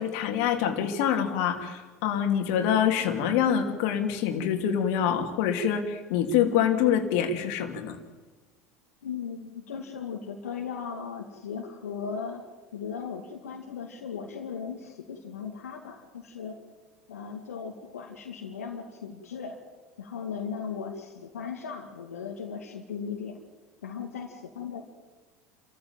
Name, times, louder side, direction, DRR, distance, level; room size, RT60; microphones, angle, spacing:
voice 1, 0.0-8.0, left 8 dB, 60° left, 5 dB, 3.0 m, -25 dB
voice 2, 9.0-12.4 12.7-16.6 17.1-19.6 20.0-23.4 23.8-24.8, left 6 dB, 80° left, 2 dB, 2.3 m, -37 dB
29.0 x 14.5 x 9.0 m, 1.4 s
figure-of-eight pair, 75°, 8 cm